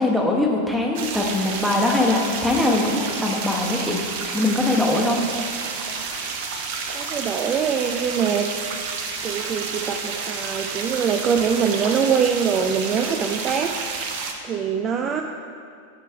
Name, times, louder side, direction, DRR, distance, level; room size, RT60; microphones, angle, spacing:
voice 1, 0.0-4.0 4.3-5.2, left 2 dB, ahead, 0 dB, 1.1 m, -21 dB
sound 1, 0.9-14.3, right 5 dB, 50° right, 0.8 m, -30 dB
voice 2, 6.9-8.5 9.2-14.0 14.4-15.2, right 7 dB, 30° right, 5 dB, 0.4 m, -23 dB
9.9 x 4.6 x 4.5 m, 2.4 s
figure-of-eight pair, 90°, 0 cm